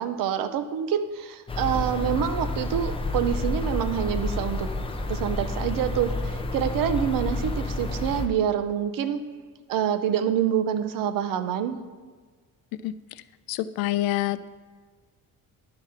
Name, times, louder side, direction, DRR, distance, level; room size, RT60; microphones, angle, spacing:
voice 1, 0.0-4.7 5.1-9.2 9.7-11.8, right 9 dB, 70° right, 10 dB, 0.7 m, -26 dB
sound 1, 1.5-8.3, left 2 dB, 15° left, 0.5 m, -29 dB
voice 2, 12.8-13.2 13.5-14.5, left 15 dB, 80° left, 14 dB, 0.5 m, -27 dB
10.5 x 4.9 x 5.8 m, 1.4 s
cardioid pair, 170°, 35 cm